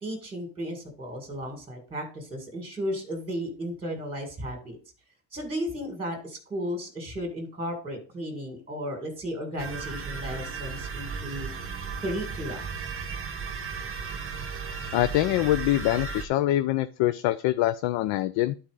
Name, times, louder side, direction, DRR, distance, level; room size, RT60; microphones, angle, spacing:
voice 1, 0.0-4.8 5.3-11.5 12.0-12.6, equal, 10° right, 2 dB, 1.9 m, -34 dB
sound 1, 9.6-16.2, right 5 dB, 25° right, 1.0 m, -35 dB
voice 2, 14.9-18.5, left 15 dB, 65° left, 11 dB, 0.6 m, -24 dB
11.0 x 4.4 x 4.8 m, 0.37 s
cardioid pair, 155°, 49 cm